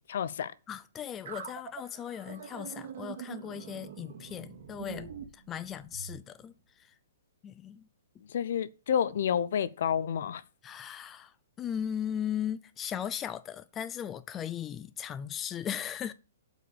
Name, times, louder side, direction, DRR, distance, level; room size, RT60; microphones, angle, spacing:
voice 1, 0.1-0.5 8.3-10.4, left 8 dB, 60° left, 0.7 m, -29 dB
voice 2, 0.7-6.9 7.4-7.9 10.6-16.1, left 9 dB, 15° left, 0.4 m, -37 dB
sound 1, 1.3-6.2, right 7 dB, 55° right, 2.1 m, -44 dB
7.9 x 5.0 x 6.9 m
hypercardioid pair, 160°, 0 cm